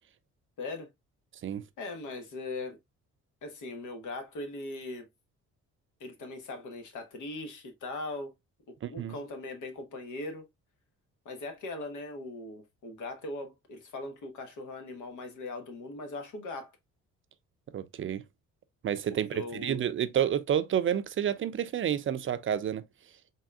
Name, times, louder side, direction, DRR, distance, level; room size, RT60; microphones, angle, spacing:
voice 1, 0.6-0.9 1.8-2.8 3.4-5.1 6.0-8.3 8.7-10.5 11.2-16.7 19.1-19.8, left 2 dB, 80° left, 1.2 m, -40 dB
voice 2, 8.8-9.1 17.7-18.2 18.8-22.8, right 9 dB, 45° right, 0.4 m, -29 dB
4.0 x 3.5 x 2.3 m
cardioid pair, 90°, 30 cm